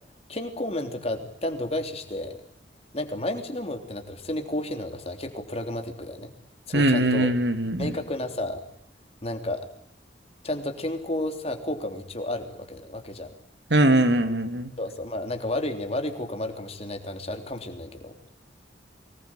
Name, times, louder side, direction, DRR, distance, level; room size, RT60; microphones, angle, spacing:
voice 1, 0.3-2.4 2.9-6.3 6.7-7.3 7.8-8.6 9.2-9.6 10.4-13.3 14.8-18.3, left 1 dB, 35° left, 5 dB, 3.4 m, -32 dB
voice 2, 6.7-7.9 13.7-14.7, right 1 dB, 70° right, 9 dB, 2.4 m, -21 dB
24.5 x 20.0 x 8.9 m, 0.70 s
head